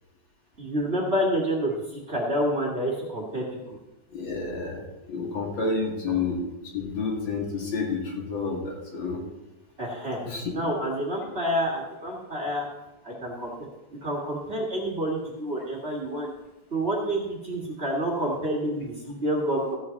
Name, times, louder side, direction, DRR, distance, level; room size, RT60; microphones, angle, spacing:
voice 1, 0.6-1.7 2.1-3.4 6.1-6.2 9.8-10.2 10.5-12.7 13.0-13.5 14.0-16.3 16.7-19.8, equal, 30° right, -2 dB, 2.2 m, -28 dB
voice 2, 4.1-6.5 6.7-9.2 10.2-10.6, left 4 dB, 80° left, -1 dB, 3.0 m, -30 dB
14.5 x 8.7 x 4.0 m, 0.97 s
omnidirectional pair, 2.1 m